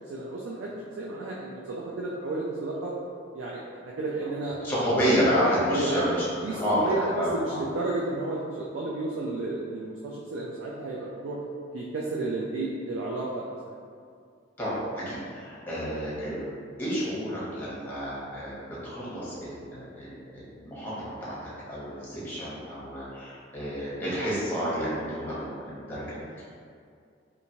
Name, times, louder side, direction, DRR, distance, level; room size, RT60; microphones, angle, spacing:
voice 1, 0.1-0.7 1.0-2.9 3.3-4.6 5.6-6.0 6.4-11.4 11.7-13.5, right 2 dB, 85° right, -4 dB, 0.4 m, -32 dB
voice 2, 4.6-7.6 14.6-16.5 16.8-18.6 18.8-26.4, equal, 10° left, -9 dB, 0.8 m, -30 dB
2.8 x 2.5 x 2.7 m, 2.3 s
head